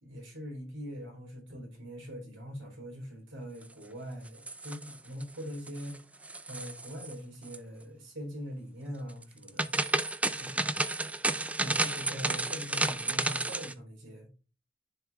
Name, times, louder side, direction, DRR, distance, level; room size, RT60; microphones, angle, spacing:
voice 1, 0.0-6.0 6.5-9.8 10.3-10.8 11.6-14.3, equal, 90° right, 3.7 m, -42 dB
sound 1, 4.3-5.2 5.5-6.0 6.2-7.1 7.4-7.6 9.2-13.7, right 2 dB, 5° right, 0.3 m, -31 dB
11.0 x 4.8 x 2.3 m
head